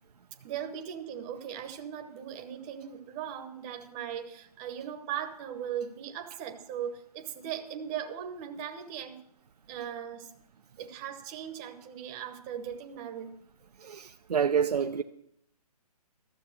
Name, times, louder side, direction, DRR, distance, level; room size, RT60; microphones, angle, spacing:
voice 1, 0.4-9.2 9.7-10.3 10.8-13.4, right 9 dB, 20° right, 0.9 m, -38 dB
voice 2, 13.8-15.0, right 7 dB, 80° right, 0.6 m, -28 dB
13.0 x 7.2 x 6.4 m
hypercardioid pair, 145°, 20 cm